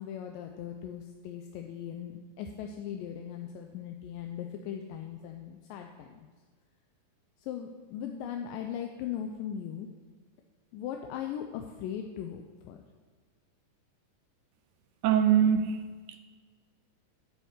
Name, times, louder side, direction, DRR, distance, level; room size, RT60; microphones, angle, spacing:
voice 1, 0.0-6.3 7.4-9.9 10.7-12.8, left 9 dB, 85° left, 4 dB, 2.3 m, -39 dB
voice 2, 15.0-16.2, right 9 dB, 80° right, 8 dB, 1.8 m, -24 dB
9.2 x 7.9 x 5.0 m, 1.5 s
omnidirectional pair, 4.0 m